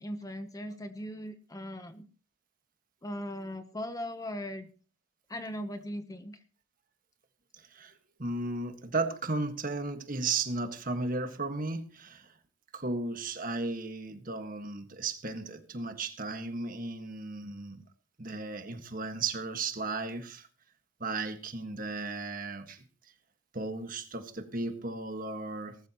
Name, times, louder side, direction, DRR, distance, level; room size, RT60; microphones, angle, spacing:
voice 1, 0.0-2.1 3.0-4.7 5.3-6.4, equal, 15° left, 0.8 m, -39 dB
voice 2, 7.6-12.3 12.7-17.8 18.2-20.5 21.0-22.8 23.5-25.8, right 3 dB, 40° right, 1.6 m, -35 dB
19.5 x 13.5 x 3.0 m
head